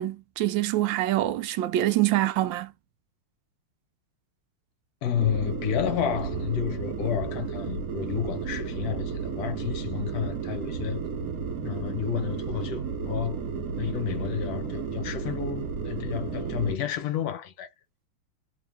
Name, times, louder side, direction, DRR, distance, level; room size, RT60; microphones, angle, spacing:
voice 1, 0.0-2.7, right 14 dB, 75° right, 1.2 m, -25 dB
voice 2, 5.0-11.0 11.6-13.4 13.8-17.7, left 9 dB, 60° left, 1.1 m, -30 dB
sound 1, 5.1-16.8, right 6 dB, 55° right, 1.1 m, -33 dB
3.5 x 3.1 x 3.4 m
omnidirectional pair, 2.4 m